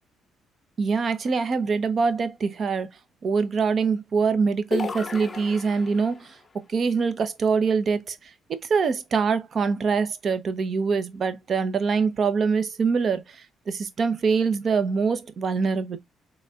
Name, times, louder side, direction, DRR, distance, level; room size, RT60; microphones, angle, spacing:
voice 1, 0.8-2.9 3.2-6.4 6.7-16.0, right 5 dB, 50° right, 0.8 m, -24 dB
sound 1, 4.7-6.2, left 5 dB, 35° left, 0.6 m, -33 dB
3.9 x 3.2 x 2.4 m
cardioid pair, 80°, 0 cm